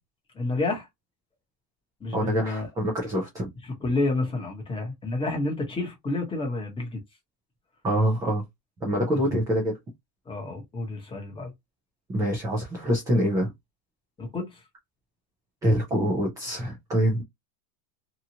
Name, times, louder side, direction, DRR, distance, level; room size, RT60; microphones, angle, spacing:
voice 1, 0.3-0.9 2.0-2.7 3.8-7.0 10.3-11.5 14.2-14.6, left 2 dB, 10° left, 0.9 m, -29 dB
voice 2, 2.1-3.5 7.8-8.5 8.8-9.8 12.1-13.5 15.6-17.2, equal, 10° right, 0.4 m, -25 dB
2.9 x 2.3 x 2.7 m
supercardioid pair, 140°, 49 cm